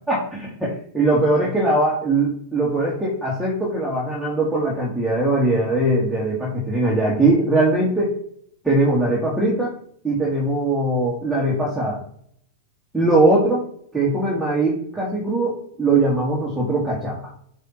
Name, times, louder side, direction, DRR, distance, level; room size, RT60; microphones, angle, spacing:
voice 1, 0.1-8.2 8.6-9.7 10.0-12.0 12.9-13.7 13.9-17.3, right 2 dB, 5° right, -6 dB, 2.3 m, -21 dB
9.1 x 3.5 x 4.5 m, 0.62 s
hypercardioid pair, 100°, 0 cm